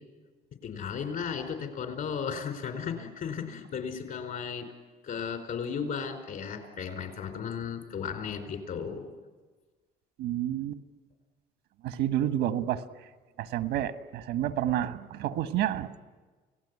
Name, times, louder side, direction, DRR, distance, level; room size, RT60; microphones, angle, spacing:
voice 1, 0.6-4.7 5.0-9.1, left 6 dB, 60° left, 6 dB, 4.6 m, -35 dB
voice 2, 10.2-10.8 11.8-12.8 13.4-16.1, right 11 dB, 90° right, 10 dB, 1.4 m, -29 dB
29.5 x 17.5 x 9.8 m, 1.4 s
cardioid pair, 110°, 17 cm